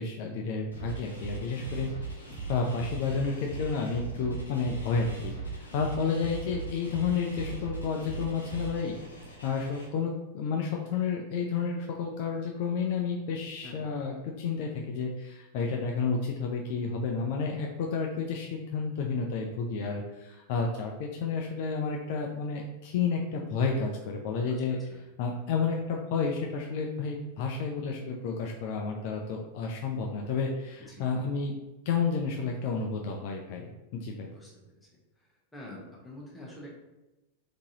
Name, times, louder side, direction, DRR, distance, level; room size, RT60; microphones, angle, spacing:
voice 1, 0.0-8.9 9.4-24.9 25.2-31.5 31.9-34.3, left 5 dB, 50° left, 1 dB, 0.3 m, -31 dB
sound 1, 0.7-9.9, right 4 dB, 75° left, 0.8 m, -39 dB
voice 2, 35.2-36.7, left 1 dB, 10° left, -4 dB, 1.0 m, -46 dB
3.7 x 2.8 x 2.7 m, 1.0 s
figure-of-eight pair, 90°, 0 cm